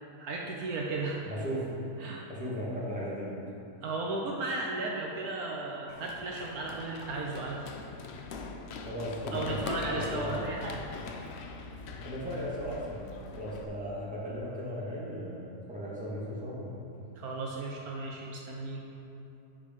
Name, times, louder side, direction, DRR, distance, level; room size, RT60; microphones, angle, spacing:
voice 1, 0.2-1.2 2.0-2.2 3.8-7.6 9.3-10.8 17.2-18.8, right 2 dB, 70° right, -2 dB, 1.3 m, -35 dB
voice 2, 1.3-1.8 2.3-3.5 8.8-10.6 12.0-17.1, equal, 5° right, -7 dB, 1.8 m, -37 dB
Run, 5.9-13.6, left 4 dB, 60° left, 0.7 m, -42 dB
9.5 x 5.0 x 5.3 m, 2.9 s
omnidirectional pair, 1.7 m